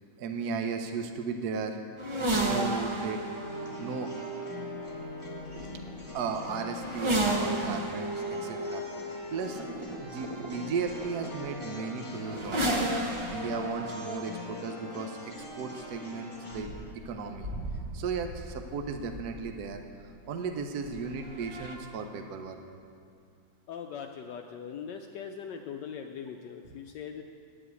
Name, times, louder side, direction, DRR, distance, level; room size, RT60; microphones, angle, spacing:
voice 1, 0.2-1.8 2.2-3.2 3.8-4.1 6.1-9.6 10.0-16.7 17.0-17.5 17.9-22.6, right 5 dB, 65° right, 5 dB, 1.1 m, -35 dB
sound 1, 2.0-19.7 20.8-21.8, right 1 dB, 45° right, 0.3 m, -34 dB
sound 2, 3.3-16.6, left 2 dB, 15° left, 1.6 m, -43 dB
voice 2, 23.7-27.2, left 7 dB, 75° left, 4 dB, 1.1 m, -40 dB
9.9 x 7.7 x 8.1 m, 2.4 s
omnidirectional pair, 2.1 m